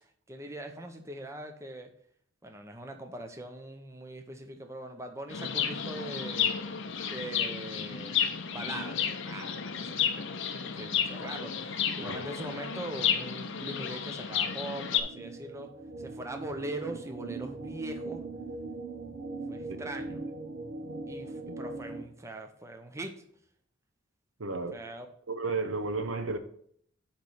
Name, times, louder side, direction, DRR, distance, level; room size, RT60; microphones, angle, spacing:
voice 1, 0.3-1.9 2.4-6.5 7.0-8.2 8.5-10.2 10.5-15.7 16.0-18.2 19.5-20.2 21.1-23.2 24.7-25.1, right 1 dB, 15° right, 0.8 m, -41 dB
Chirp tweet, 5.3-15.0, left 7 dB, 65° left, 0.7 m, -32 dB
sound 1, 14.7-22.0, right 3 dB, 55° right, 1.2 m, -40 dB
voice 2, 24.4-24.8 25.3-26.4, right 3 dB, 75° right, 0.8 m, -32 dB
8.8 x 3.2 x 5.5 m
head